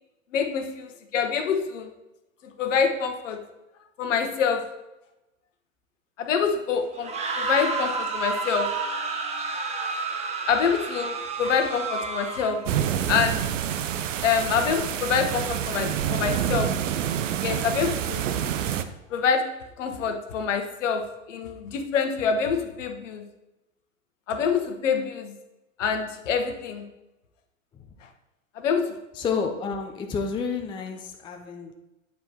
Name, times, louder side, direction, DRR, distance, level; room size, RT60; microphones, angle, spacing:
voice 1, 0.3-0.9 1.1-1.9 2.6-3.4 4.0-4.6 6.2-7.1 7.4-8.7 10.5-12.6 13.1-13.4 14.2-16.7 17.4-18.2 19.1-19.4 19.8-21.0 21.3-23.2 24.3-25.3 25.8-26.8 28.6-28.8, left 6 dB, 65° left, 6 dB, 1.1 m, -25 dB
sound 1, 6.9-12.7, right 4 dB, 15° right, 0.9 m, -30 dB
sound 2, 12.7-18.8, right 9 dB, 65° right, 0.7 m, -27 dB
voice 2, 29.1-31.7, left 5 dB, 10° left, 4 dB, 0.5 m, -30 dB
8.4 x 4.4 x 4.3 m, 0.97 s
hypercardioid pair, 105°, 40 cm